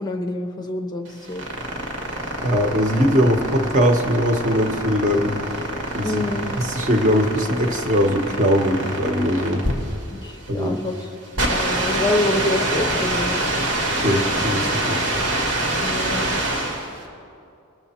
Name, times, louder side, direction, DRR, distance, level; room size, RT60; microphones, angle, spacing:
voice 1, 0.0-1.5 6.0-6.5 10.1-11.1 11.5-13.4 15.8-16.6, left 2 dB, 20° left, 4 dB, 0.6 m, -26 dB
sound 1, 1.1-17.0, right 1 dB, 85° right, 1.9 m, -25 dB
voice 2, 2.4-5.5 5.9-6.2 6.6-9.6 10.5-10.8 13.9-15.0, equal, 35° right, 4 dB, 1.0 m, -20 dB
20.5 x 7.0 x 4.3 m, 2.5 s
head